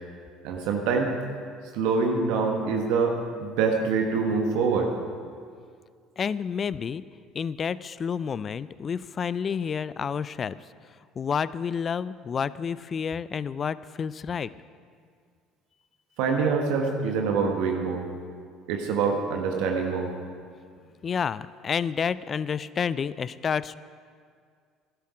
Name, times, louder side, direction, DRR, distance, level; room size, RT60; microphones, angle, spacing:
voice 1, 0.4-1.1 1.7-4.9 16.2-18.1 18.7-20.1, right 5 dB, 70° right, 2 dB, 1.3 m, -25 dB
voice 2, 6.2-7.0 7.3-10.6 11.2-14.5 21.0-23.8, left 6 dB, 40° left, 17 dB, 0.4 m, -29 dB
12.5 x 11.5 x 4.9 m, 2.1 s
hypercardioid pair, 65°, 0 cm